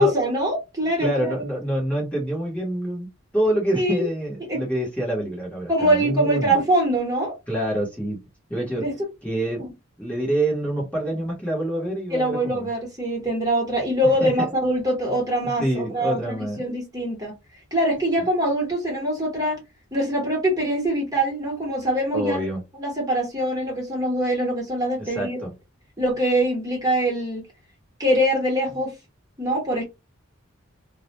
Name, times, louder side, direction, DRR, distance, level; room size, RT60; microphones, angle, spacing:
voice 1, 0.0-1.4 3.7-4.1 4.5-4.6 5.7-7.4 8.8-9.0 9.6-9.7 12.1-17.3 17.7-19.6 19.9-22.5 22.8-25.4 26.0-27.4 28.0-28.9 29.4-29.8, right 1 dB, 15° right, 1.0 m, -23 dB
voice 2, 1.0-3.1 3.3-6.5 7.5-8.2 8.5-8.8 9.2-9.6 10.0-12.7 14.2-14.5 15.6-16.6 22.1-22.6 25.0-25.5, right 1 dB, 5° left, 1.0 m, -26 dB
2.3 x 2.1 x 2.9 m
head